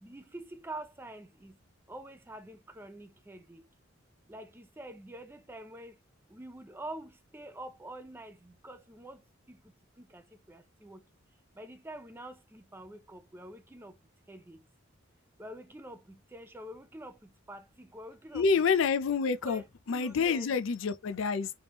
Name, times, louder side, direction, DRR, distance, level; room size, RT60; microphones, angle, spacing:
voice 1, 0.0-1.6 1.9-3.7 4.3-6.0 6.3-9.2 9.5-9.6 10.0-11.0 11.6-14.0 14.3-14.6 15.4-18.6 19.2-20.6, right 1 dB, 10° right, 0.4 m, -46 dB
voice 2, 18.3-19.6 19.9-21.5, left 5 dB, 70° left, 0.4 m, -27 dB
3.4 x 3.3 x 2.9 m
head